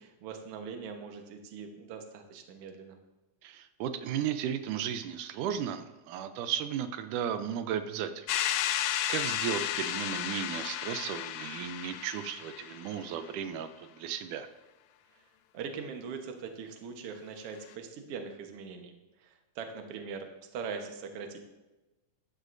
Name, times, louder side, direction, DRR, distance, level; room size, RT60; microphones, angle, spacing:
voice 1, 0.0-3.0 15.1-15.3 15.5-20.3 20.5-21.4, right 5 dB, 60° right, 4 dB, 1.8 m, -41 dB
voice 2, 3.4-8.4 8.8-14.5, right 9 dB, 85° right, 9 dB, 2.1 m, -35 dB
sound 1, 8.3-13.1, left 12 dB, 80° left, 1.7 m, -33 dB
14.5 x 11.5 x 2.6 m, 1.1 s
omnidirectional pair, 3.6 m